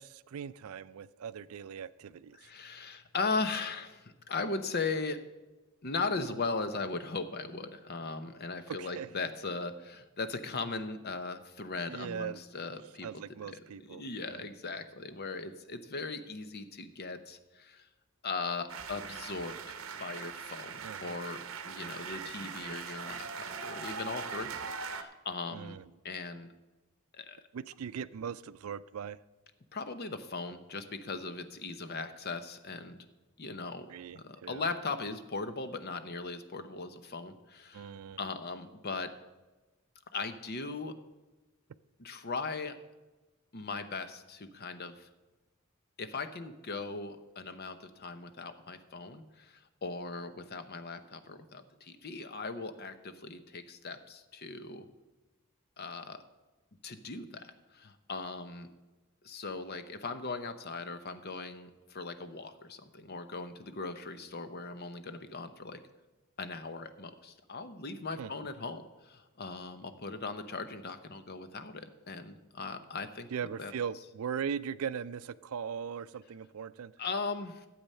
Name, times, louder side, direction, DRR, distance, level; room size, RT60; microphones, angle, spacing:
voice 1, 0.0-2.5 8.7-9.1 11.8-12.4 13.0-14.4 20.8-21.2 21.8-22.1 24.6-24.7 25.5-25.8 27.5-29.2 33.9-34.6 37.7-38.2 68.2-68.3 73.3-76.9, right 7 dB, 80° right, 16 dB, 0.4 m, -39 dB
voice 2, 2.3-5.2 5.8-13.1 13.4-17.9 18.2-25.8 26.0-26.5 27.1-27.4 29.7-33.0 33.4-33.9 34.1-37.9 38.2-39.1 40.1-40.9 42.0-42.8 43.5-45.1 46.0-54.9 55.8-56.2 56.8-58.7 59.2-65.8 66.4-73.3 73.6-73.7 77.0-77.7, left 3 dB, 50° left, 10 dB, 0.8 m, -38 dB
sound 1, 18.7-25.0, right 6 dB, 65° right, 0.9 m, -41 dB
12.0 x 7.9 x 5.5 m, 1.1 s
head